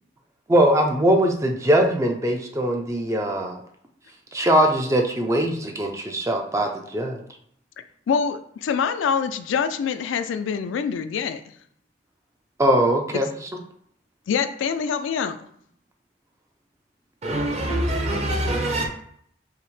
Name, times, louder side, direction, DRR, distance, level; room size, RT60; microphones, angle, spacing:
voice 1, 0.5-3.6 4.3-7.2 12.6-13.3, right 1 dB, 15° right, 3 dB, 0.4 m, -21 dB
voice 2, 8.1-11.4 13.1-13.2 14.3-15.4, left 6 dB, 80° left, 9 dB, 0.3 m, -25 dB
voice 3, 17.2-18.9, right 1 dB, 35° right, 0 dB, 0.8 m, -24 dB
5.6 x 2.1 x 3.1 m, 0.66 s
head